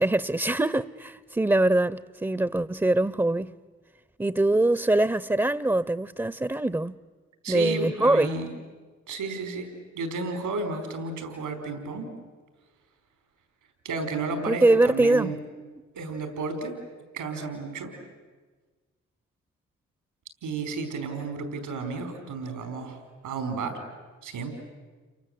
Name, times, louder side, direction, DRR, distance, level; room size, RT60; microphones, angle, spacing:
voice 1, 0.0-3.5 4.2-7.0 7.5-8.3 14.5-15.3, right 2 dB, 10° right, 0.8 m, -23 dB
voice 2, 7.4-8.5 9.1-9.7 9.9-12.1 13.8-15.4 15.9-16.8 17.1-17.9 20.4-23.0 23.2-23.8 24.2-24.5, right 4 dB, 85° right, 4.6 m, -32 dB
29.0 x 24.0 x 8.0 m
supercardioid pair, 45°, 31 cm